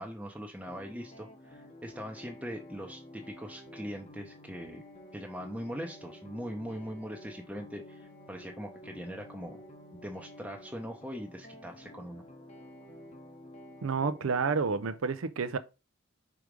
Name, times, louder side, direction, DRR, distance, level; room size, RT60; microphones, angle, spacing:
voice 1, 0.0-4.8 5.1-9.6 9.9-12.2, equal, 5° right, 0.7 m, -41 dB
sound 1, 0.6-15.0, left 1 dB, 35° left, 1.1 m, -51 dB
voice 2, 13.8-15.6, right 5 dB, 75° right, 0.5 m, -30 dB
4.8 x 4.8 x 5.1 m
head